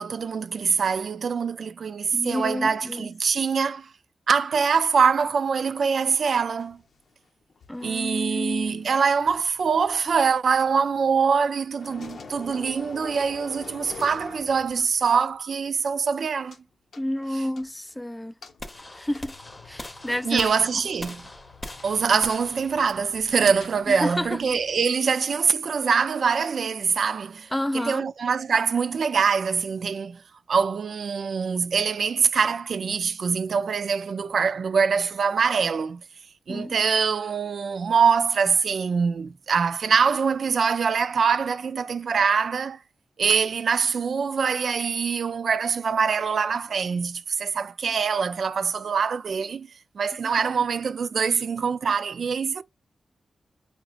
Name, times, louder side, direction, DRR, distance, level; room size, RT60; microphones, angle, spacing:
voice 1, 0.0-3.9 4.3-6.8 7.8-16.6 17.3-17.4 20.2-21.2 21.8-30.2 30.5-36.0 36.5-42.8 43.2-49.7 50.0-52.6, right 6 dB, 70° right, 0.3 m, -24 dB
voice 2, 2.1-3.1 7.7-8.9 17.0-18.3 19.0-19.3 19.7-20.5 23.9-24.3 27.5-28.1 36.5-36.7, left 1 dB, 10° left, 0.4 m, -29 dB
sound 1, 6.6-11.5 11.7-15.1 15.3-15.4 16.5-16.6 16.9-17.9 18.4-24.9, left 4 dB, 75° left, 0.8 m, -46 dB
sound 2, 18.6-24.7, left 1 dB, 25° left, 0.8 m, -42 dB
5.0 x 2.8 x 2.3 m
wide cardioid pair, 120°, 0 cm